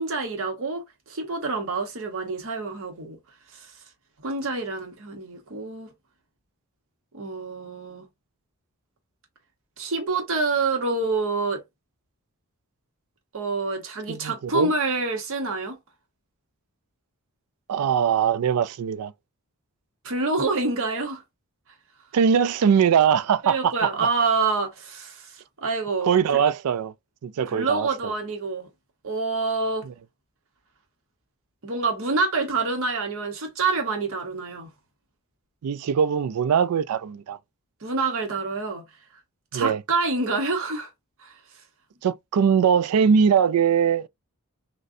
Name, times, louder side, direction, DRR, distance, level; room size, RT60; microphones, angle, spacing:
voice 1, 0.0-3.2 3.5-3.7 4.2-5.9 7.1-8.1 9.8-11.6 13.3-15.8 20.0-21.2 23.4-26.1 27.5-28.7 29.0-29.9 31.6-34.7 37.8-38.8 39.5-40.9 41.2-41.3, right 3 dB, 65° right, 1.0 m, -27 dB
voice 2, 14.1-14.7 17.7-19.1 22.1-23.9 26.0-26.9 27.2-28.1 29.8-29.9 35.6-37.4 39.5-39.8 42.0-44.1, right 7 dB, 85° right, 0.4 m, -21 dB
6.4 x 2.2 x 2.6 m
head